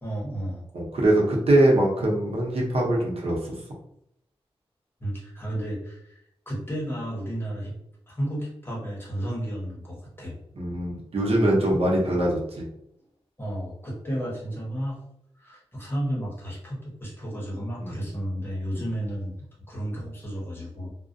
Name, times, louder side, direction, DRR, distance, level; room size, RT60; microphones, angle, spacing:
voice 1, 0.0-0.6 5.0-6.2 6.5-7.7 8.1-10.4 13.4-15.0 15.4-19.4 19.7-20.9, equal, 20° left, -5 dB, 1.0 m, -32 dB
voice 2, 0.7-3.6 10.5-12.7 17.8-18.1 18.7-18.8, right 1 dB, 70° right, -3 dB, 0.8 m, -23 dB
2.4 x 2.1 x 2.6 m, 0.76 s
wide cardioid pair, 120°, 10 cm